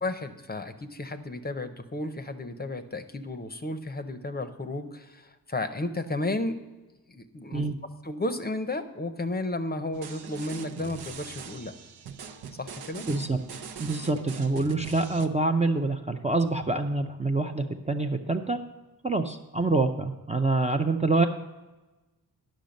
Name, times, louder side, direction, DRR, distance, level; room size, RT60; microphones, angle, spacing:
voice 1, 0.0-6.6 7.1-7.7 8.0-11.7 12.6-13.1, left 2 dB, 25° left, 8 dB, 0.6 m, -33 dB
sound 1, 9.9-15.3, right 7 dB, 80° right, 0.7 m, -42 dB
voice 2, 13.1-13.4 13.8-18.6 19.0-21.3, right 3 dB, 20° right, 4 dB, 0.5 m, -26 dB
10.0 x 6.4 x 5.2 m, 1.1 s
wide cardioid pair, 95°, 37 cm